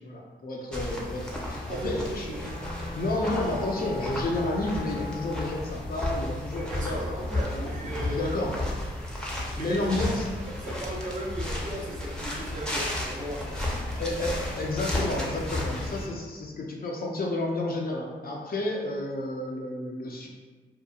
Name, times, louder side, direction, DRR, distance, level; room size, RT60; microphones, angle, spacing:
voice 1, 0.0-2.3 3.0-8.6 9.6-10.3 14.0-20.3, left 2 dB, 45° left, -1 dB, 0.5 m, -31 dB
sound 1, 0.7-16.1, left 1 dB, 5° left, 0.7 m, -33 dB
voice 2, 1.7-2.4 6.5-8.3 9.5-10.1 10.5-14.0, right 1 dB, 40° right, -5 dB, 0.8 m, -36 dB
Wind instrument woodwind instrument, 2.3-5.7, left 3 dB, 70° left, 0.8 m, -40 dB
2.8 x 2.2 x 2.4 m, 1.4 s
supercardioid pair, 40°, 21 cm